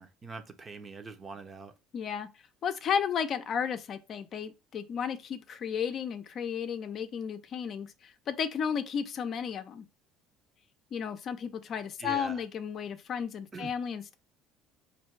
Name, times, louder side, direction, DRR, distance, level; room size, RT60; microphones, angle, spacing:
voice 1, 0.0-1.7 12.0-12.4 13.5-13.7, right 3 dB, 30° right, 0.8 m, -43 dB
voice 2, 1.9-2.3 2.6-9.9 10.9-14.1, left 7 dB, 50° left, 0.6 m, -33 dB
4.3 x 2.7 x 4.5 m
supercardioid pair, 85°, 0 cm